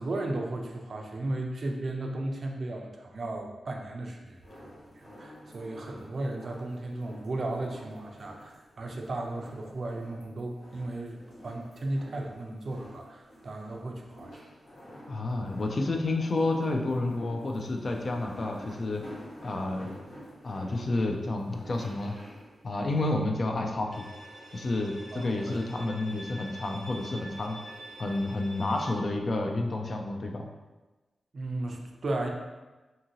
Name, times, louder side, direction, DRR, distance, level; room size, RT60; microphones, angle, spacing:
voice 1, 0.0-4.7 5.0-14.4 25.1-25.6 31.3-32.3, right 2 dB, 55° right, 1 dB, 0.4 m, -35 dB
sound 1, 4.4-23.1, equal, 80° left, 1.3 m, -49 dB
voice 2, 15.1-19.1 19.4-19.9 20.4-22.2 22.6-24.0 24.5-27.6 28.0-30.5, left 2 dB, 50° left, 3 dB, 0.3 m, -30 dB
Bowed string instrument, 23.9-28.9, right 1 dB, 5° right, 0.6 m, -46 dB
2.7 x 2.6 x 2.8 m, 1.2 s
wide cardioid pair, 95°, 0 cm